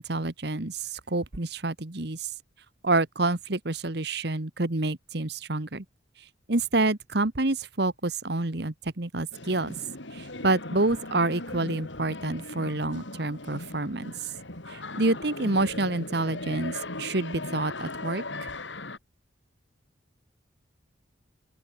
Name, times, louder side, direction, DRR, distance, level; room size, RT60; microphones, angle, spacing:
voice 1, 0.0-2.3 2.8-5.8 6.5-9.7 10.1-14.1 14.7-18.5, right 2 dB, 55° right, 1.5 m, -28 dB
sound 1, 9.3-19.0, left 2 dB, 70° left, 4.2 m, -38 dB
open air
head